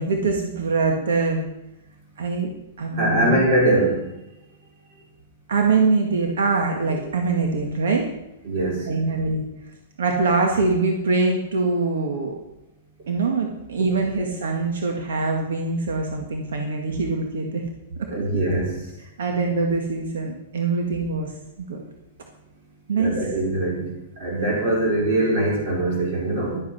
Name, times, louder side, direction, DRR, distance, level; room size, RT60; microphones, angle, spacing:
voice 1, 0.0-1.4 2.2-2.5 2.8-3.4 5.5-8.1 8.9-9.4 10.0-12.3 13.1-17.6 18.0-18.1 19.2-21.3 21.7-21.8 22.9-23.2, right 3 dB, 85° right, 2 dB, 1.8 m, -23 dB
voice 2, 2.9-4.1 6.9-7.0 8.4-8.9 18.1-18.8 22.9-26.6, right 1 dB, 40° right, -2 dB, 4.9 m, -22 dB
12.0 x 8.3 x 5.7 m, 0.92 s
supercardioid pair, 170°, 0 cm